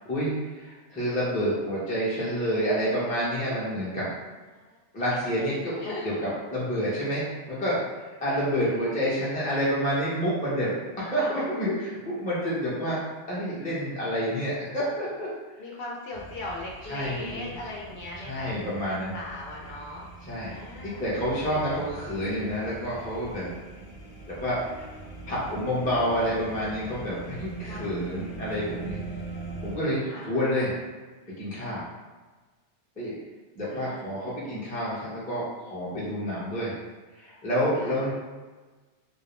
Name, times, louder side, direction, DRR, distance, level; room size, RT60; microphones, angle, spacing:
voice 1, 0.1-4.1 4.9-5.7 6.0-7.8 8.2-13.0 13.3-15.3 16.9-17.5 18.2-19.1 20.3-20.5 20.8-23.5 24.3-24.9 25.3-29.0 29.6-30.7 31.3-31.8 33.0-33.1 33.5-36.7 37.2-38.1, equal, 10° left, -9 dB, 0.5 m, -28 dB
voice 2, 5.1-6.1 11.1-11.4 15.6-18.6 18.8-20.1 20.5-21.1 21.8-21.9 27.7-28.0 30.1-30.4 33.7-34.1 37.7-38.1, left 2 dB, 65° left, -2 dB, 0.7 m, -39 dB
sound 1, 16.1-29.8, right 3 dB, 90° left, 1.0 m, -42 dB
2.4 x 2.0 x 3.0 m, 1.3 s
omnidirectional pair, 1.2 m